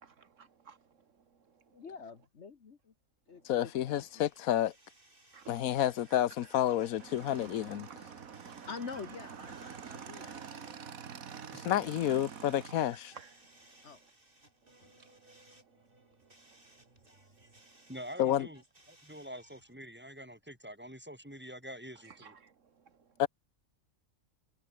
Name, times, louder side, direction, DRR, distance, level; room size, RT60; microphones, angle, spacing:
voice 1, 0.0-0.8 5.3-5.5 8.4-8.5 9.7-10.2 10.5-10.6 13.1-13.3 22.2-22.5, right 6 dB, 65° right, 1.6 m, -54 dB
voice 2, 1.7-2.9 3.3-3.7 4.1-4.3 8.7-10.7 13.8-14.0 14.8-14.9 15.3-15.4, left 5 dB, 55° left, 1.6 m, -46 dB
voice 3, 3.4-4.7 5.5-7.9 11.5-13.1 18.2-18.5 23.2-23.3, left 12 dB, 85° left, 1.2 m, -30 dB
sound 1, 3.8-19.7, right 1 dB, 40° right, 6.0 m, -63 dB
Motorcycle / Engine, 7.0-12.8, right 7 dB, 80° right, 1.9 m, -46 dB
voice 4, 17.9-18.6 18.9-22.3, equal, 5° right, 3.8 m, -46 dB
omnidirectional pair, 1.4 m